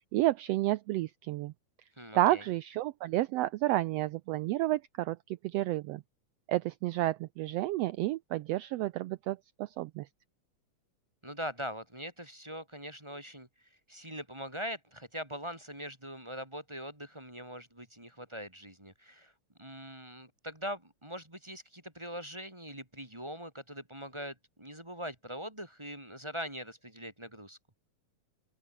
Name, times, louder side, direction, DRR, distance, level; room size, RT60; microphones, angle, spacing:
voice 1, 0.1-1.5 2.1-6.0 6.5-10.1, right 16 dB, 75° right, 1.5 m, -31 dB
voice 2, 2.0-2.4 11.2-13.5 13.9-19.3 19.6-27.6, equal, 10° right, 2.5 m, -42 dB
open air
omnidirectional pair, 3.3 m